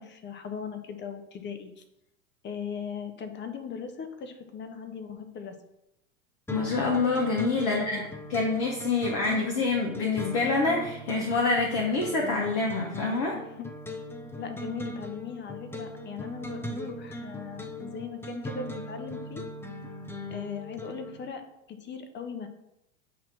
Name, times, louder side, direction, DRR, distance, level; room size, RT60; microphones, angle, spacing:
voice 1, 0.0-1.8 2.4-5.6 7.7-8.1 13.3-13.7 14.4-19.4 20.3-22.5, left 6 dB, 25° left, 7 dB, 1.1 m, -39 dB
voice 2, 6.5-8.0 8.3-13.3, left 3 dB, 45° left, 0 dB, 1.4 m, -26 dB
sound 1, 6.5-21.2, left 1 dB, 5° left, 0.7 m, -39 dB
8.6 x 3.0 x 6.0 m, 0.86 s
hypercardioid pair, 105°, 42 cm